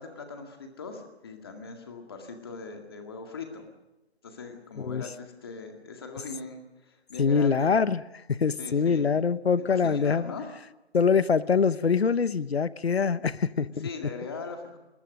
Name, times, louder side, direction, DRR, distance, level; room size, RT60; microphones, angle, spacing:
voice 1, 0.0-3.7 4.2-7.7 8.6-9.1 9.6-10.5 13.8-14.8, left 4 dB, 20° left, 4 dB, 2.1 m, -40 dB
voice 2, 7.2-8.0 8.3-10.3 10.9-13.9, left 5 dB, 70° left, 17 dB, 1.0 m, -24 dB
22.5 x 20.0 x 6.6 m, 1.0 s
hypercardioid pair, 175°, 33 cm